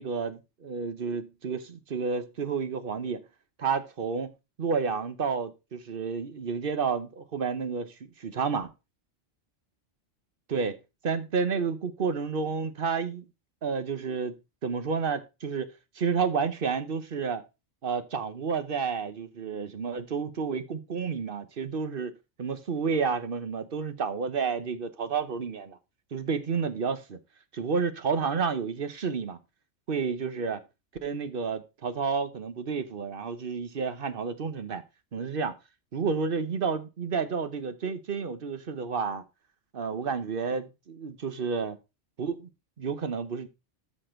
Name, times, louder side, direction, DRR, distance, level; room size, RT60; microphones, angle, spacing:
voice 1, 0.0-3.2 3.6-4.3 4.6-8.7 10.5-10.8 11.0-13.2 13.6-14.3 14.6-17.4 17.8-22.1 22.4-25.8 26.1-27.2 27.5-29.4 29.9-30.6 31.0-34.8 35.1-35.6 35.9-39.2 39.7-41.8 42.2-42.5 42.8-43.5, right 5 dB, 50° right, 1.1 m, -30 dB
13.0 x 4.4 x 4.4 m
omnidirectional pair, 1.3 m